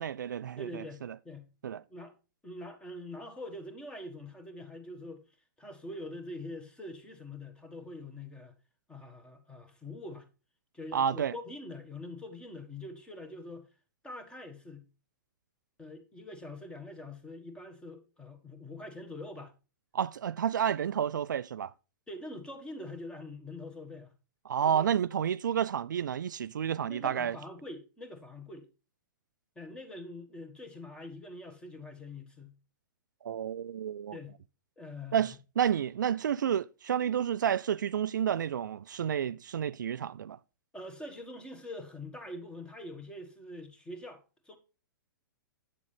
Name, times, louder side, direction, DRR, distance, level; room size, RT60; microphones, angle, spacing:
voice 1, 0.0-1.1 1.6-1.8 10.9-11.3 19.9-21.7 24.5-27.4 33.2-34.2 35.1-40.4, right 9 dB, 65° right, 0.4 m, -30 dB
voice 2, 0.6-1.5 1.9-2.1 2.4-5.2 5.6-8.5 8.9-10.3 10.7-13.7 14.0-14.9 15.8-19.5 22.1-24.1 24.6-24.9 26.8-28.7 29.5-32.5 34.1-34.4 34.8-35.3 40.7-44.6, left 1 dB, 10° left, 1.6 m, -44 dB
8.7 x 7.0 x 3.3 m
figure-of-eight pair, 115°, 11 cm